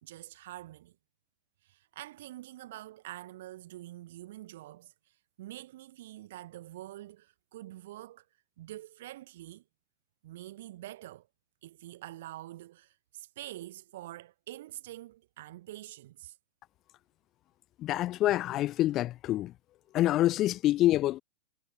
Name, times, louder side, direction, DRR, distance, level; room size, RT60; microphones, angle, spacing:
voice 1, 0.0-1.0 1.6-4.9 5.4-8.2 8.6-9.6 10.2-11.3 11.6-16.4, right 15 dB, 65° right, 5.0 m, -46 dB
voice 2, 17.8-19.5 19.9-21.2, left 14 dB, 35° left, 1.2 m, -26 dB
hypercardioid pair, 105°, 0 cm